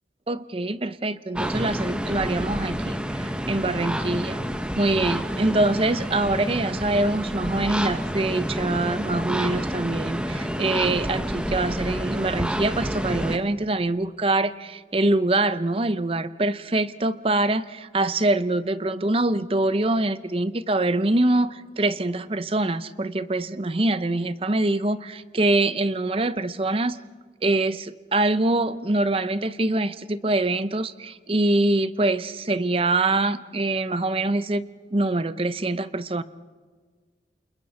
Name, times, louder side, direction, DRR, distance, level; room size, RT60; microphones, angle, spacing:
voice 1, 0.3-4.4 4.8-27.0 27.4-34.6 34.9-36.2, right 2 dB, 30° right, 13 dB, 0.7 m, -24 dB
sound 1, 1.4-13.4, equal, 5° right, 1.0 m, -29 dB
29.5 x 28.0 x 4.3 m, 1.5 s
head